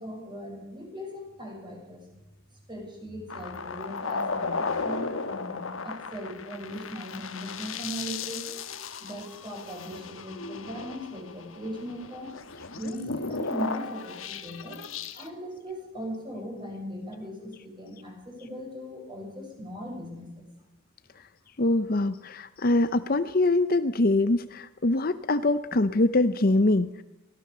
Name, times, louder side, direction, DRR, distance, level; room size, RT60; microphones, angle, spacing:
voice 1, 0.0-2.0 2.7-8.5 9.0-12.3 12.7-14.8 15.1-20.5, equal, 20° right, 0 dB, 6.6 m, -39 dB
sound 1, 3.3-15.3, left 4 dB, 75° left, 1.4 m, -35 dB
voice 2, 21.6-27.0, left 2 dB, 45° left, 12 dB, 0.7 m, -24 dB
23.5 x 16.5 x 6.9 m, 0.92 s
head